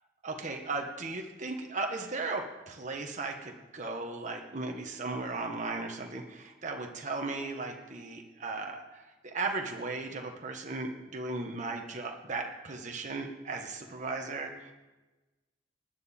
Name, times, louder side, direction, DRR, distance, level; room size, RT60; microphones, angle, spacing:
voice 1, 0.2-14.7, right 3 dB, 45° right, 2 dB, 1.2 m, -36 dB
19.5 x 9.2 x 4.3 m, 1.2 s
head